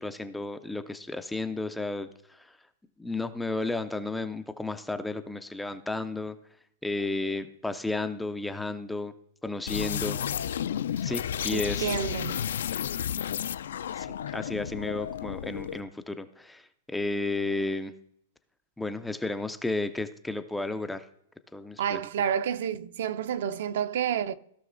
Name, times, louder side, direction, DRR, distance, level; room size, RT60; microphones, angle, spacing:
voice 1, 0.0-2.5 3.0-6.4 6.8-9.1 9.4-10.2 11.0-12.0 14.0-17.9 18.8-21.1 21.5-22.0, left 2 dB, 5° left, 0.4 m, -33 dB
sound 1, 9.7-15.8, left 9 dB, 65° left, 0.4 m, -32 dB
voice 2, 11.5-12.4 21.8-24.3, right 9 dB, 55° right, 0.6 m, -29 dB
16.0 x 6.2 x 3.8 m
supercardioid pair, 180°, 0 cm